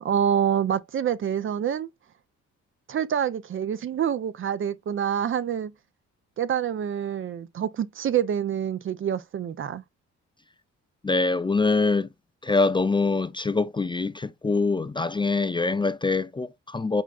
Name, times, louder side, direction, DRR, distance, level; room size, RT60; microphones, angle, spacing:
voice 1, 0.0-1.9 2.9-5.7 6.4-9.8, right 9 dB, 45° right, 0.5 m, -26 dB
voice 2, 11.0-12.1 12.4-17.0, left 3 dB, 15° left, 0.4 m, -24 dB
6.1 x 3.6 x 2.4 m
cardioid pair, 90°, 30 cm